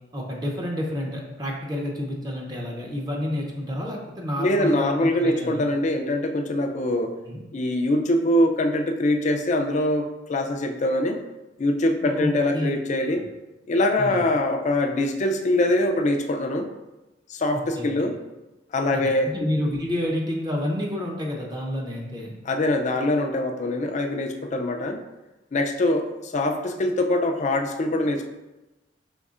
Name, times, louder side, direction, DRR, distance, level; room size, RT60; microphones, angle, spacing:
voice 1, 0.1-5.6 7.3-7.4 12.0-12.7 13.1-13.2 14.0-14.2 17.5-17.9 18.9-22.3, left 1 dB, 20° right, -1 dB, 0.7 m, -29 dB
voice 2, 4.4-7.1 7.5-11.2 11.6-13.3 13.7-16.7 17.3-18.1 18.7-19.5 22.5-25.0 25.5-28.2, left 1 dB, 40° left, 4 dB, 0.4 m, -23 dB
5.3 x 3.4 x 2.4 m, 1.0 s
head